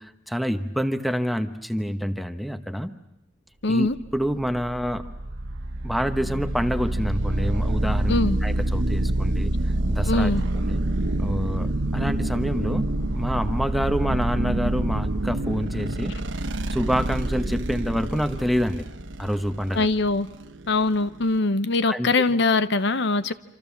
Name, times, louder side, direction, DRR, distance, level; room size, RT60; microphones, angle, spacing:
voice 1, 0.0-2.9 3.7-5.0 5.8-9.5 9.9-10.3 10.6-10.8 11.2-16.2 16.7-18.9 19.2-19.9 21.9-22.4, equal, ahead, 1.1 m, -27 dB
voice 2, 3.6-3.9 8.1-8.4 10.0-10.4 19.7-20.3 20.7-23.3, left 3 dB, 65° left, 0.9 m, -22 dB
sound 1, 4.0-21.4, right 1 dB, 80° right, 1.3 m, -27 dB
27.5 x 26.5 x 7.3 m
head